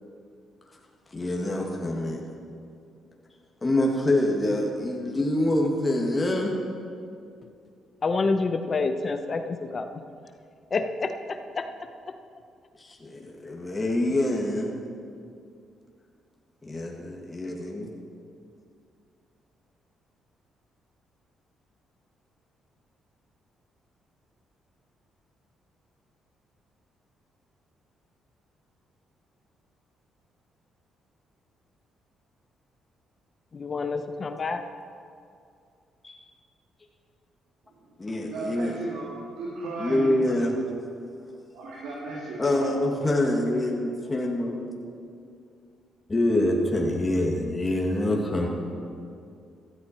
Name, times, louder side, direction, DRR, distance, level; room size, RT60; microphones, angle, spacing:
voice 1, 1.1-2.2 3.6-6.6 13.0-14.7 16.6-17.9 36.0-36.1 38.0-38.7 39.8-40.5 42.4-44.7 46.1-48.5, left 1 dB, 20° left, 1.9 m, -25 dB
voice 2, 8.0-10.0 10.7-11.6 33.5-34.6, left 3 dB, 40° left, 0.8 m, -28 dB
voice 3, 37.6-40.4 41.5-42.7, right 2 dB, 90° right, 2.8 m, -36 dB
16.0 x 13.0 x 4.4 m
cardioid pair, 90°, 0 cm